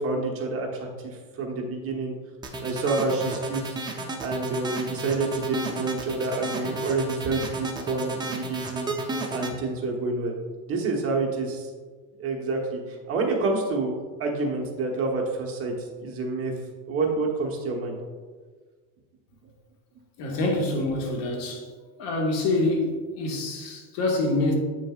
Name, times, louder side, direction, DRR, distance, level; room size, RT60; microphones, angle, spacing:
voice 1, 0.0-2.1 2.6-8.9 9.3-10.4 10.7-11.7 12.2-16.5 16.9-18.0, right 3 dB, 30° right, 0 dB, 1.1 m, -28 dB
sound 1, 2.4-9.5, right 2 dB, 10° right, 0.6 m, -32 dB
voice 2, 20.2-21.7 22.0-24.6, left 2 dB, 55° left, 1 dB, 1.7 m, -26 dB
8.3 x 6.3 x 2.4 m, 1.5 s
supercardioid pair, 140°, 42 cm